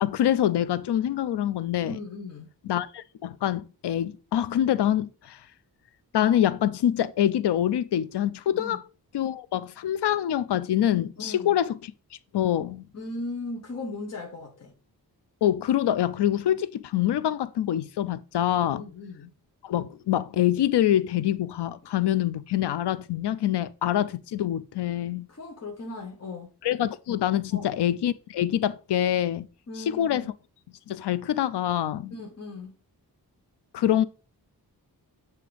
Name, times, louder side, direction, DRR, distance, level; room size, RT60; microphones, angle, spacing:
voice 1, 0.0-2.0 2.6-5.4 6.1-8.8 9.1-11.9 12.3-12.9 15.4-18.8 19.6-25.3 26.6-29.5 29.9-30.2 30.9-32.1 33.7-34.0, left 11 dB, 80° left, 0.5 m, -25 dB
voice 2, 1.8-2.5 8.5-8.8 11.2-11.6 12.9-14.7 18.7-19.3 25.3-26.5 27.5-27.7 29.7-30.3 32.1-32.8, left 2 dB, 40° left, 1.0 m, -38 dB
7.7 x 2.9 x 5.0 m
wide cardioid pair, 160°, 40 cm